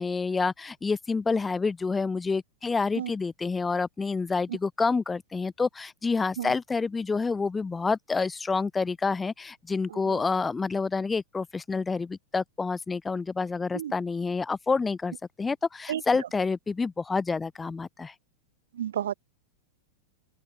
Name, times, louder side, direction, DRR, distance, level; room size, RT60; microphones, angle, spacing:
voice 1, 0.0-18.1, left 4 dB, 15° left, 0.6 m, -28 dB
voice 2, 9.9-10.2 13.7-13.9 15.9-16.3 18.7-19.1, right 10 dB, 70° right, 0.6 m, -32 dB
open air
figure-of-eight pair, 95°, 0 cm